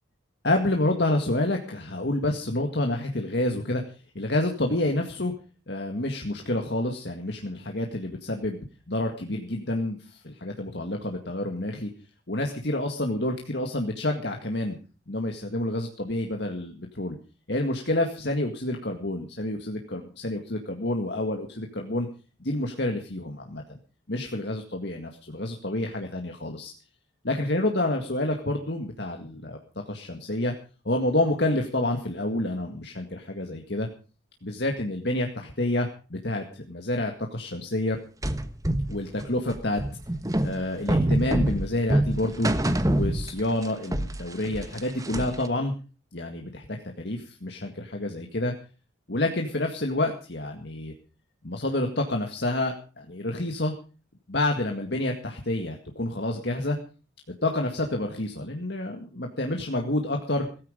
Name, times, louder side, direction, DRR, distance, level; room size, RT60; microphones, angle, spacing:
voice 1, 0.4-3.8 4.2-5.3 5.7-8.6 8.9-11.9 12.3-14.8 15.1-17.2 17.5-22.1 22.4-23.8 24.1-26.7 27.2-29.6 29.9-30.5 30.9-33.9 34.4-38.0 38.9-39.8 40.4-42.5 42.9-45.7 46.1-48.5 49.1-50.9 51.4-53.7 54.3-56.8 57.4-60.5, left 1 dB, 60° left, 3 dB, 2.0 m, -28 dB
sound 1, 38.2-43.7 43.9-45.5, right 1 dB, 20° right, 1.3 m, -26 dB
17.5 x 14.5 x 5.1 m, 0.36 s
head